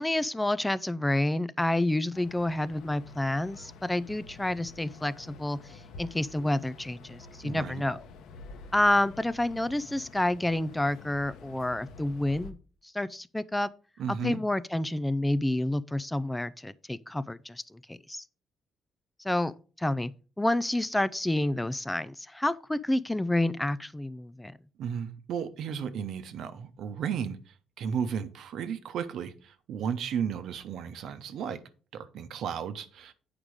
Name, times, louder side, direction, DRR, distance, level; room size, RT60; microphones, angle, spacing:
voice 1, 0.0-8.0 8.7-12.6 12.9-13.7 14.2-18.2 19.2-19.5 19.8-20.1 20.4-24.5, left 1 dB, 5° left, 0.3 m, -29 dB
sound 1, 2.1-12.5, left 4 dB, 85° left, 1.1 m, -49 dB
voice 2, 7.4-7.8 14.0-14.4 24.8-31.6 31.9-33.1, right 7 dB, 65° right, 0.9 m, -34 dB
8.7 x 5.1 x 4.8 m
cardioid pair, 140°, 0 cm